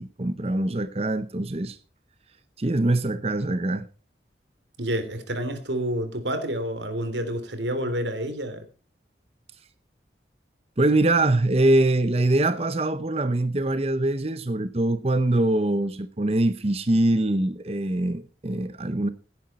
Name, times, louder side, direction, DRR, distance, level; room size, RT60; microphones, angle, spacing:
voice 1, 0.0-1.8 2.6-3.9 10.8-19.1, right 2 dB, 35° right, 0.8 m, -23 dB
voice 2, 4.8-8.6, equal, 85° right, 3.3 m, -29 dB
17.0 x 10.5 x 4.3 m
head